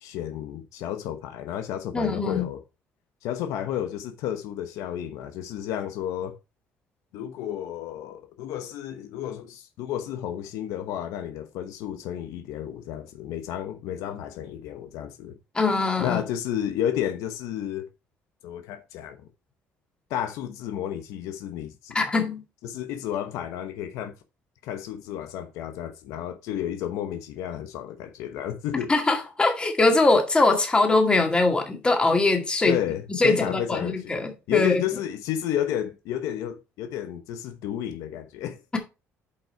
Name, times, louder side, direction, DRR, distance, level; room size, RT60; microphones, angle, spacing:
voice 1, 0.0-2.6 3.2-6.3 7.1-15.4 16.0-17.8 18.4-19.2 20.1-22.0 22.6-24.1 24.6-28.9 32.7-34.1 34.5-38.6, left 10 dB, 90° left, 1.0 m, -31 dB
voice 2, 1.9-2.5 15.5-16.2 21.9-22.4 28.9-32.8 33.2-34.8, left 3 dB, 15° left, 2.1 m, -22 dB
8.6 x 5.5 x 4.5 m
cardioid pair, 120°, 5 cm